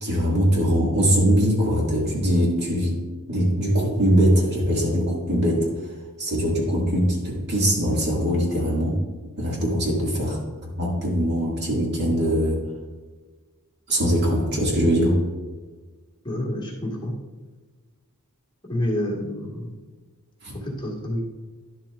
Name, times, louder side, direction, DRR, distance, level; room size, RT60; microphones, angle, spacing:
voice 1, 0.0-3.0 3.3-5.7 6.2-9.0 9.4-10.4 10.8-12.6 13.9-15.2 20.4-20.5, equal, 50° right, -3 dB, 2.2 m, -21 dB
voice 2, 16.2-17.1 18.7-19.7 20.5-21.2, left 1 dB, 20° left, -3 dB, 1.7 m, -28 dB
11.0 x 7.4 x 2.5 m, 1.3 s
head